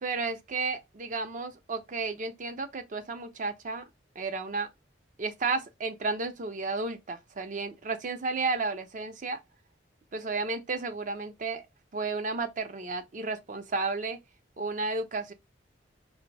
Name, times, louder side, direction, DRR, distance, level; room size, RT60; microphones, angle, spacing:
voice 1, 0.0-3.8 4.2-4.7 5.2-9.4 10.1-11.6 11.9-14.2 14.6-15.3, right 3 dB, 45° right, 0.5 m, -32 dB
2.6 x 2.0 x 3.9 m
head